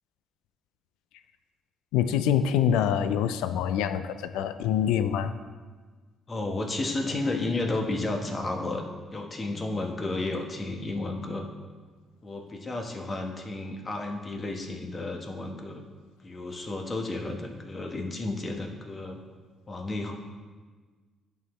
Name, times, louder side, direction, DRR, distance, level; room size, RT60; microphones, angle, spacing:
voice 1, 1.9-5.3, left 9 dB, 85° left, 11 dB, 0.3 m, -25 dB
voice 2, 6.3-8.8 9.1-11.5 12.2-15.8 16.2-19.2 19.7-20.2, left 2 dB, 35° left, 2 dB, 1.2 m, -32 dB
11.0 x 4.5 x 3.1 m, 1.4 s
supercardioid pair, 65°, 0 cm